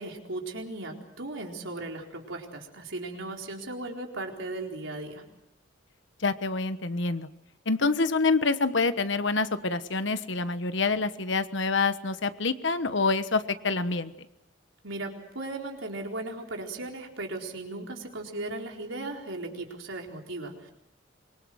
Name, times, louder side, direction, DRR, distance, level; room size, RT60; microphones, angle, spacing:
voice 1, 0.0-5.2 14.8-20.7, right 2 dB, 85° right, 1 dB, 4.3 m, -37 dB
voice 2, 6.2-7.3 7.7-14.1, left 3 dB, 65° left, 11 dB, 1.3 m, -26 dB
25.5 x 24.0 x 6.4 m, 0.80 s
head